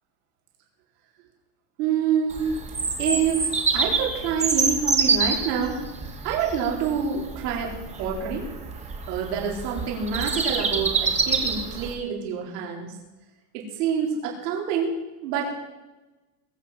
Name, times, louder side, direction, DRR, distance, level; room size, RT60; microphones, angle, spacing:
voice 1, 1.8-2.5 3.0-5.8 6.2-8.5 9.1-12.9 13.5-14.9 15.2-15.6, right 7 dB, 75° right, -1 dB, 4.2 m, -27 dB
Bird vocalization bird call bird song, 2.3-11.9, right 4 dB, 15° right, 1.8 m, -27 dB
21.5 x 7.6 x 7.4 m, 1.1 s
supercardioid pair, 150°, 48 cm